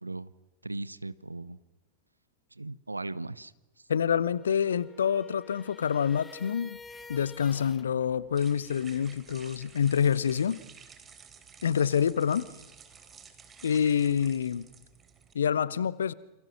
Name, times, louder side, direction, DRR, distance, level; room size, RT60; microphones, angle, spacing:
voice 1, 0.0-0.3 0.6-1.6 2.5-3.5, right 2 dB, 80° right, 19 dB, 0.9 m, -38 dB
voice 2, 3.9-6.8 7.1-10.6 11.6-12.5 13.6-14.7 15.3-16.1, left 8 dB, 65° left, 19 dB, 1.0 m, -27 dB
sound 1, 4.3-7.9, left 4 dB, 15° left, 1.8 m, -49 dB
sound 2, 6.7-15.3, right 6 dB, 20° right, 3.5 m, -53 dB
28.5 x 28.0 x 6.2 m, 1.0 s
figure-of-eight pair, 90°, 0 cm